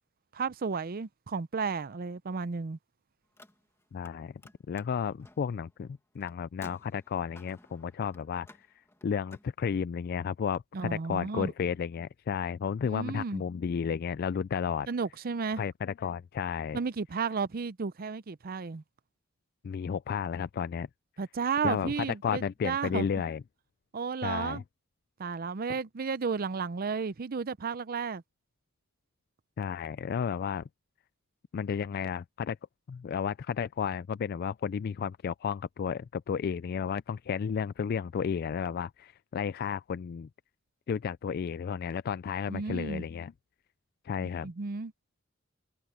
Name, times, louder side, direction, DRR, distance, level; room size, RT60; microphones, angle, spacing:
voice 1, 0.3-2.8 10.7-11.5 12.9-13.4 14.9-15.6 16.7-18.8 21.2-23.1 23.9-24.6 25.2-28.2 42.5-43.1 44.2-44.9, right 5 dB, 45° right, 0.5 m, -33 dB
Car, 3.2-4.1 4.4-9.5, left 1 dB, 15° left, 1.7 m, -56 dB
voice 2, 3.9-4.3 4.7-8.5 9.0-14.9 15.6-16.8 19.6-20.9 21.6-23.4 24.2-24.6 29.6-30.7 31.5-32.6 32.9-40.3 40.9-43.3 44.0-44.5, left 7 dB, 50° left, 0.3 m, -32 dB
head